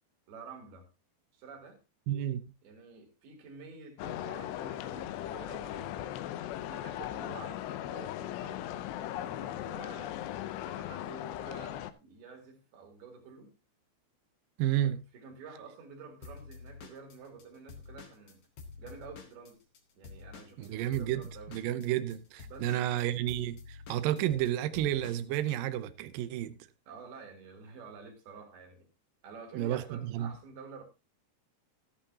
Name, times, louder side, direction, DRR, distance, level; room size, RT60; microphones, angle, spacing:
voice 1, 0.3-0.9 1.3-1.8 2.6-6.2 6.7-10.2 10.6-13.5 14.8-18.4 18.8-19.6 20.0-21.6 22.5-23.0 26.9-28.9 29.2-30.8, right 5 dB, 65° right, 4.3 m, -50 dB
voice 2, 2.1-2.4 14.6-15.0 20.6-21.2 21.5-26.6 29.5-30.3, right 12 dB, 85° right, 1.9 m, -31 dB
sound 1, 4.0-11.9, left 12 dB, 80° left, 2.8 m, -38 dB
Drum kit / Drum, 16.2-19.8 20.0-25.6, left 5 dB, 55° left, 1.8 m, -49 dB
14.0 x 11.5 x 2.8 m
omnidirectional pair, 5.0 m